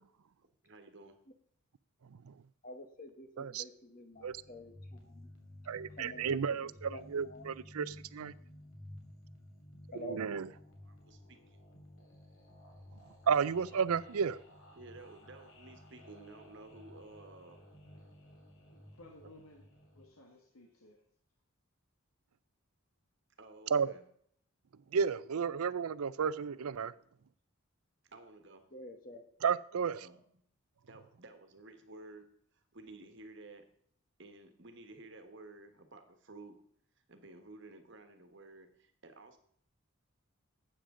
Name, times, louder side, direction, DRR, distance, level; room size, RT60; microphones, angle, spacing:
voice 1, 0.6-1.2 10.7-11.6 14.7-17.6 23.4-24.1 28.1-28.6 30.0-30.2 30.8-32.3 32.5-33.6 34.2-36.6 37.1-39.4, right 2 dB, 55° right, 1.4 m, -53 dB
voice 2, 2.6-5.3 6.0-7.4 9.9-10.2 28.7-29.2, left 1 dB, 40° left, 1.3 m, -49 dB
sound 1, 4.1-20.1, left 1 dB, 60° left, 3.0 m, -55 dB
voice 3, 5.7-8.3 9.9-10.5 13.3-14.4 23.7-23.9 24.9-26.9 29.4-30.0, right 6 dB, 85° right, 0.5 m, -32 dB
voice 4, 18.7-19.7 19.9-21.0, left 2 dB, 85° left, 1.5 m, -57 dB
12.5 x 8.7 x 3.8 m
head